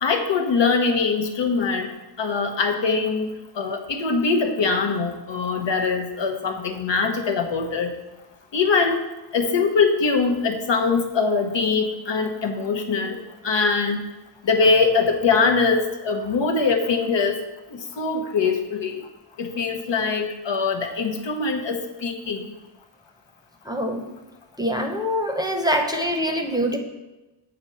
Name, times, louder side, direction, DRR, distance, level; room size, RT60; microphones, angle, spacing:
voice 1, 0.0-1.9 2.2-7.9 8.5-9.0 9.3-13.2 13.4-14.0 14.4-17.4 17.7-19.0 19.4-22.5, left 4 dB, 80° left, 4 dB, 1.0 m, -22 dB
voice 2, 23.7-24.1 24.6-26.8, equal, 10° right, 3 dB, 0.7 m, -24 dB
7.9 x 4.2 x 5.5 m, 1.1 s
wide cardioid pair, 120°, 43 cm